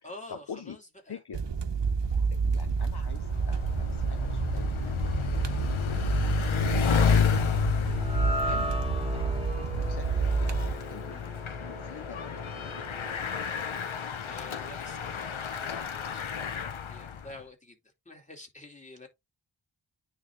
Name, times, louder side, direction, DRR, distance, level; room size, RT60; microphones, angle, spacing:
voice 1, 0.0-1.2 14.3-16.2 16.9-17.8 18.0-19.1, left 2 dB, 15° left, 2.6 m, -47 dB
voice 2, 1.1-1.5 2.3-6.9 7.3-7.9 8.4-8.8 9.1-11.2 11.6-13.1, left 6 dB, 55° left, 0.8 m, -47 dB
sound 1, 1.3-10.7, right 5 dB, 65° right, 0.9 m, -29 dB
Bicycle, 2.7-17.4, left 8 dB, 85° left, 0.9 m, -31 dB
sound 2, 7.9-14.3, right 1 dB, 10° right, 1.3 m, -38 dB
9.5 x 3.5 x 3.2 m
wide cardioid pair, 60°, 47 cm